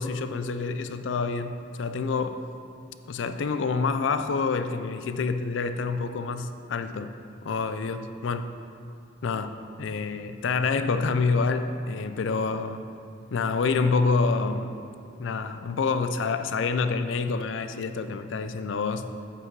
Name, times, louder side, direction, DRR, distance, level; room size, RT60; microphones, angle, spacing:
voice 1, 0.0-2.4 3.1-7.1 7.4-8.5 9.2-12.8 13.3-14.7 15.2-19.1, left 4 dB, 65° left, 10 dB, 0.4 m, -27 dB
8.2 x 5.9 x 4.6 m, 2.5 s
head